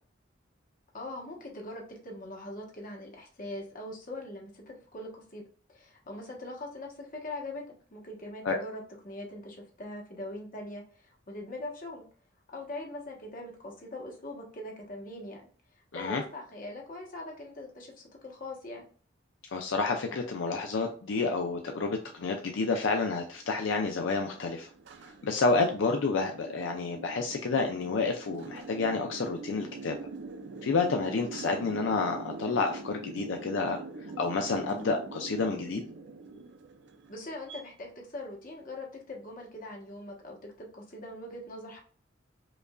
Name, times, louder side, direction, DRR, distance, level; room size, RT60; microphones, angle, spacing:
voice 1, 0.9-5.4 5.7-12.0 12.5-15.4 15.9-18.9 37.1-41.8, left 1 dB, 45° left, 0 dB, 1.1 m, -42 dB
voice 2, 19.5-24.7 25.2-30.0 30.6-33.8 34.2-35.8, left 4 dB, 75° left, 3 dB, 0.5 m, -29 dB
sound 1, 21.6-37.6, right 3 dB, 65° right, 0.5 m, -44 dB
5.1 x 2.5 x 2.3 m, 0.42 s
head